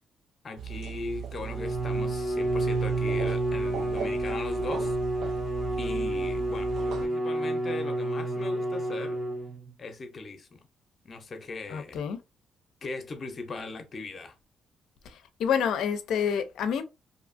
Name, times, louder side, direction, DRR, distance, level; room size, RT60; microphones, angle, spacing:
voice 1, 0.4-5.4 5.8-9.2 9.8-10.6 11.0-12.0 12.8-14.3, left 3 dB, 45° left, 0.7 m, -39 dB
sound 1, 0.6-7.1, right 8 dB, 75° right, 0.4 m, -38 dB
Bowed string instrument, 1.4-9.7, right 1 dB, 10° right, 0.6 m, -29 dB
voice 2, 11.7-12.2 15.4-16.8, left 7 dB, 75° left, 0.5 m, -27 dB
2.6 x 2.4 x 2.5 m
cardioid pair, 90°, 0 cm